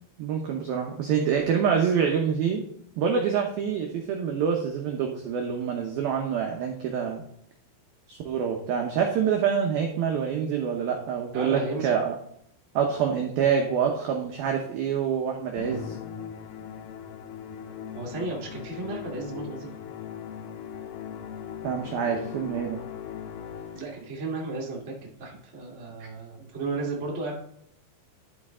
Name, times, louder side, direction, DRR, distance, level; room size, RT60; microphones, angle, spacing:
voice 1, 0.2-2.6 3.0-7.2 8.1-12.2 12.7-16.0 21.6-22.8, right 7 dB, 85° right, 2 dB, 2.1 m, -26 dB
voice 2, 11.3-11.9 17.9-19.7 23.7-27.4, right 3 dB, 55° right, -3 dB, 0.8 m, -34 dB
Musical instrument, 15.6-24.1, left 8 dB, 80° left, 2.2 m, -39 dB
12.5 x 5.2 x 3.6 m, 0.69 s
omnidirectional pair, 5.6 m